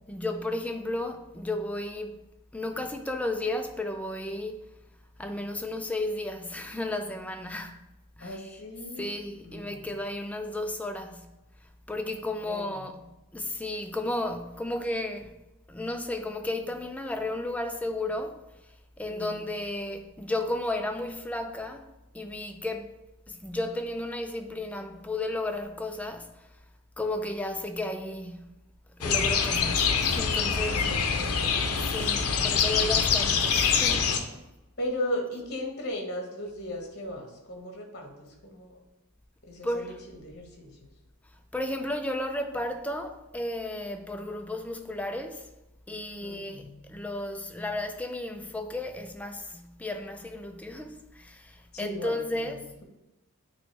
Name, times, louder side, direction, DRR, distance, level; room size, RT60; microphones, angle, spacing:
voice 1, 0.1-2.2 2.5-4.7 5.2-7.8 8.2-8.6 9.0-11.3 11.9-12.9 13.3-15.3 15.7-23.0 23.3-26.6 27.0-28.5 29.0-30.8 31.9-34.2 39.6-40.0 41.5-45.5 45.9-52.7, left 1 dB, 5° left, 0.4 m, -33 dB
voice 2, 8.2-9.1 9.4-9.9 12.4-12.8 19.1-19.4 30.7-31.8 34.8-38.8 39.4-40.9 46.2-46.7 51.7-52.8, left 1 dB, 45° left, 1.1 m, -37 dB
sound 1, 29.0-34.2, left 6 dB, 80° left, 0.6 m, -25 dB
9.0 x 3.1 x 3.3 m
head